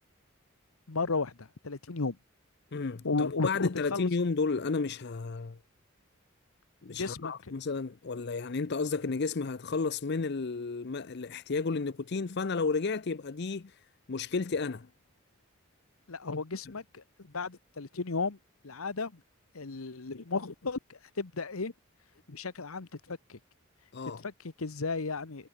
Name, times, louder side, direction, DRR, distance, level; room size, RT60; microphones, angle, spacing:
voice 1, 0.9-2.2 3.0-4.1 6.9-7.5 16.1-18.4 18.6-19.2 19.5-21.7 22.3-23.4 24.2-25.5, left 3 dB, 85° left, 1.1 m, -34 dB
voice 2, 2.7-5.6 6.8-13.7 14.1-14.9 23.9-24.2, left 4 dB, 50° left, 0.6 m, -32 dB
head